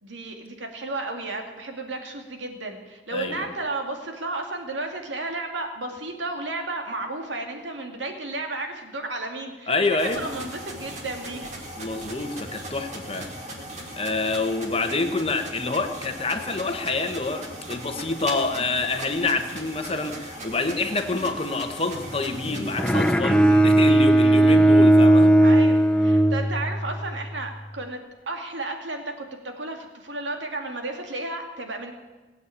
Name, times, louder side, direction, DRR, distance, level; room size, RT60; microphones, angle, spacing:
voice 1, 0.0-9.7 10.1-11.5 25.4-28.0 28.3-31.9, right 2 dB, 90° right, 4 dB, 2.4 m, -33 dB
voice 2, 3.1-3.5 9.7-10.2 11.8-13.3 14.0-25.4, left 3 dB, 30° left, 6 dB, 1.3 m, -27 dB
sound 1, 10.0-23.1, right 1 dB, 40° right, 3.0 m, -38 dB
sound 2, 21.9-26.1, equal, 60° right, 3.4 m, -40 dB
Bowed string instrument, 22.8-27.0, right 1 dB, 5° left, 0.8 m, -17 dB
20.0 x 8.4 x 8.6 m, 1.3 s
head